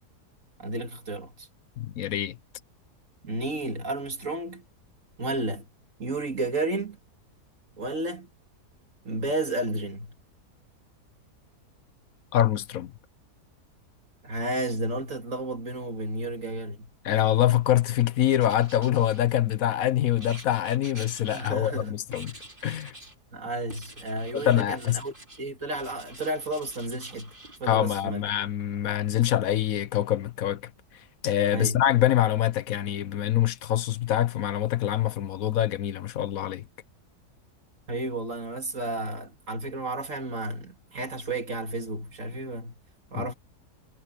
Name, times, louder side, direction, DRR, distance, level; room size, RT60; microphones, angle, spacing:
voice 1, 0.6-1.5 3.2-4.6 5.2-5.6 6.0-7.0 7.8-8.3 9.0-10.1 14.2-16.9 21.3-21.9 23.3-27.3 27.6-28.2 31.5-31.8 37.9-42.8 43.1-43.3, right 2 dB, 50° right, 2.9 m, -32 dB
voice 2, 1.8-2.4 12.3-12.9 17.0-22.3 22.6-22.9 24.3-25.0 27.6-30.7 31.2-36.7 43.1-43.3, left 12 dB, 65° left, 1.2 m, -25 dB
Writing, 18.3-19.6 20.2-21.8 22.1-23.2 23.7-25.4 25.7-27.6, right 1 dB, 30° right, 5.5 m, -47 dB
omnidirectional pair, 1.7 m